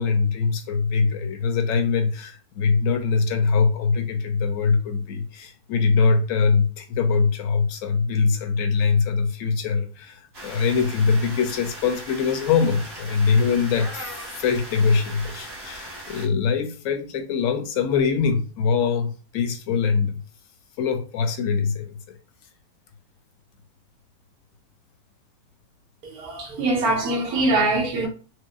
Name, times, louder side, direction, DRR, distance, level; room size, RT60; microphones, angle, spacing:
voice 1, 0.0-20.2 20.8-22.2, left 5 dB, 70° left, 0.9 m, -23 dB
sound 1, 10.3-16.3, right 1 dB, 45° right, 1.4 m, -38 dB
voice 2, 26.1-28.1, right 2 dB, 85° right, 1.3 m, -23 dB
4.6 x 2.1 x 2.3 m
omnidirectional pair, 1.6 m